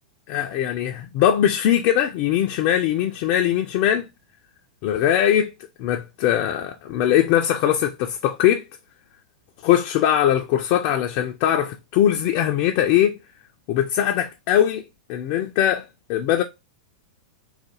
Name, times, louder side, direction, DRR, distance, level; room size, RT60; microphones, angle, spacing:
voice 1, 0.3-4.1 4.8-5.5 5.8-8.6 9.6-13.2 13.7-14.8 15.1-16.4, left 11 dB, 45° left, 0.4 m, -21 dB
3.9 x 2.1 x 2.9 m
figure-of-eight pair, 100°, 4 cm